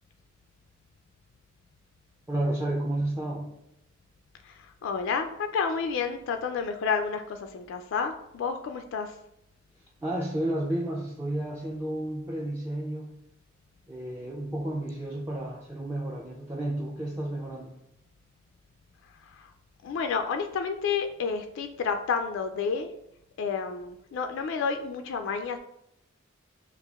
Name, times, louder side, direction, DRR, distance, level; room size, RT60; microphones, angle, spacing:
voice 1, 2.3-3.5 10.0-13.2 13.9-17.7, right 1 dB, 15° right, -2 dB, 0.4 m, -31 dB
voice 2, 4.4-9.1 19.2-19.5 19.8-22.9 23.4-25.6, left 5 dB, 65° left, 6 dB, 0.3 m, -30 dB
6.8 x 2.4 x 2.3 m, 0.80 s
head